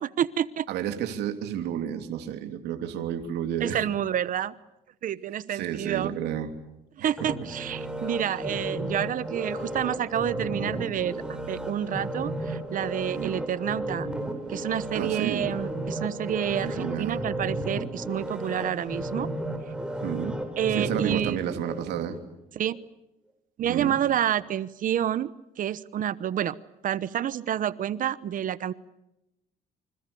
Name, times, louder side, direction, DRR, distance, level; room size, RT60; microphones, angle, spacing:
voice 1, 0.0-0.7 3.6-4.5 5.0-6.2 7.0-11.2 11.5-14.1 14.5-19.3 20.6-21.4 22.6-22.8 23.6-25.3 25.6-26.5 26.8-28.7, right 10 dB, 55° right, 16 dB, 1.0 m, -28 dB
voice 2, 0.7-3.8 5.5-6.5 7.0-7.3 13.1-13.3 14.9-15.5 16.6-17.2 20.0-20.4 20.7-22.2 23.7-24.0, right 9 dB, 80° right, 6 dB, 3.1 m, -31 dB
sound 1, 7.2-22.2 22.7-22.8, right 1 dB, 5° right, 4.8 m, -34 dB
28.5 x 26.5 x 7.0 m, 0.92 s
cardioid pair, 110°, 17 cm